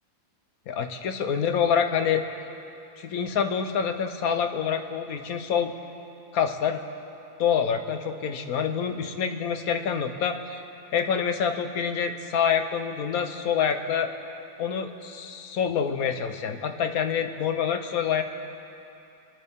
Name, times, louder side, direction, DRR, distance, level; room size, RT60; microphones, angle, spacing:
voice 1, 0.7-2.2 3.0-5.7 6.3-6.8 7.4-10.6 10.9-14.1 14.6-18.2, left 7 dB, 65° left, 7 dB, 1.3 m, -26 dB
25.0 x 12.5 x 3.6 m, 2.7 s
omnidirectional pair, 1.7 m